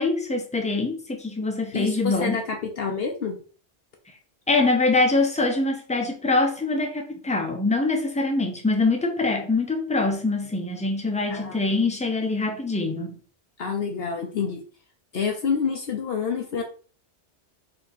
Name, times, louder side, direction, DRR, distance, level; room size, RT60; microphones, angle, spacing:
voice 1, 0.0-2.4 4.5-13.1, left 3 dB, 10° left, 0.6 m, -24 dB
voice 2, 1.7-3.4 11.3-11.6 13.6-14.6 15.1-16.6, left 6 dB, 60° left, 0.9 m, -28 dB
4.4 x 2.9 x 4.0 m
omnidirectional pair, 1.2 m